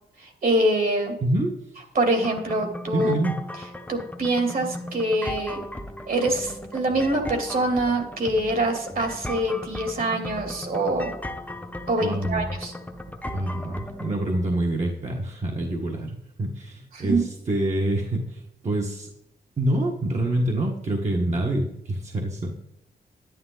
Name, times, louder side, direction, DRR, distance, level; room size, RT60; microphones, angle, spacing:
voice 1, 0.2-1.1 1.9-3.1 3.9-5.6 6.1-11.1 11.9-12.7 16.9-17.2, right 1 dB, 60° right, 4 dB, 2.7 m, -24 dB
sound 1, 2.2-14.1, left 1 dB, 10° left, 1.0 m, -36 dB
voice 2, 2.9-3.4 12.0-12.5 13.3-19.1 19.6-22.5, right 1 dB, 45° right, 0 dB, 1.4 m, -26 dB
11.0 x 9.5 x 3.9 m, 0.83 s
cardioid pair, 85°, 17 cm